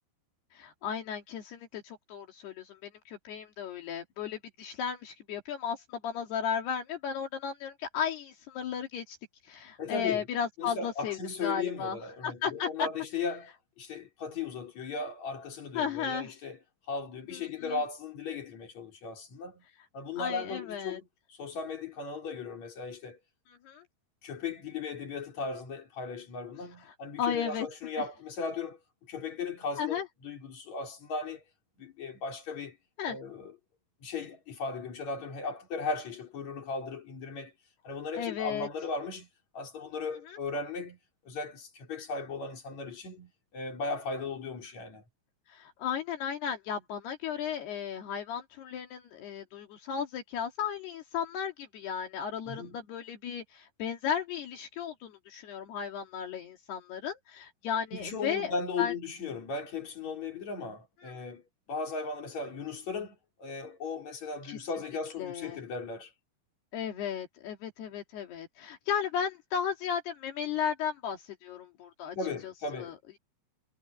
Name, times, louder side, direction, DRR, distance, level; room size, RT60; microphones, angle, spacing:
voice 1, 0.5-9.2 9.4-12.9 15.7-16.3 17.3-17.8 20.2-21.0 23.5-23.8 27.2-27.7 29.8-30.1 33.0-33.2 38.2-38.7 40.3-40.4 45.5-58.9 61.0-61.1 64.5-64.6 65.2-65.6 66.7-72.2 72.4-73.2, left 7 dB, 75° left, 4.4 m, -35 dB
voice 2, 9.8-10.3 10.6-13.5 13.8-16.6 16.9-19.6 19.9-23.2 24.2-31.4 31.8-32.8 33.1-33.5 34.0-37.5 37.8-39.3 39.5-41.0 41.3-45.0 52.5-52.8 57.9-61.4 61.7-66.1 72.2-72.9, left 4 dB, 45° left, 5.7 m, -37 dB
omnidirectional pair, 4.7 m